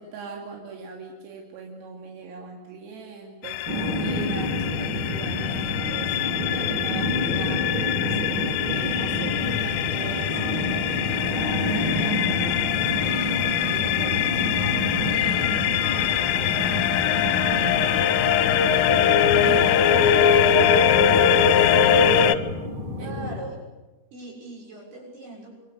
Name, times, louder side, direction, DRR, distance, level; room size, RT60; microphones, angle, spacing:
voice 1, 0.0-22.0 23.0-23.3, right 4 dB, 85° right, 1 dB, 5.3 m, -41 dB
sound 1, 3.5-22.4, left 9 dB, 75° left, 2.8 m, -22 dB
sound 2, 3.7-23.4, left 1 dB, 25° right, 4.8 m, -29 dB
voice 2, 23.0-23.6 24.1-25.6, right 2 dB, 50° right, 0 dB, 8.7 m, -39 dB
26.0 x 23.0 x 8.1 m, 1.2 s
omnidirectional pair, 6.0 m